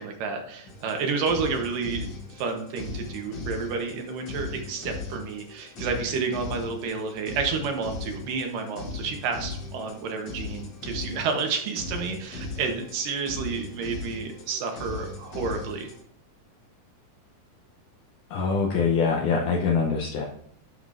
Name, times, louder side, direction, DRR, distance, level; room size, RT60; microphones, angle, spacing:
voice 1, 0.0-15.9, right 5 dB, 70° right, 3 dB, 2.7 m, -30 dB
sound 1, 0.6-16.0, left 3 dB, 45° left, 1.8 m, -38 dB
voice 2, 18.3-20.3, left 5 dB, 70° left, 0 dB, 2.2 m, -24 dB
11.5 x 5.3 x 2.6 m, 0.70 s
omnidirectional pair, 4.1 m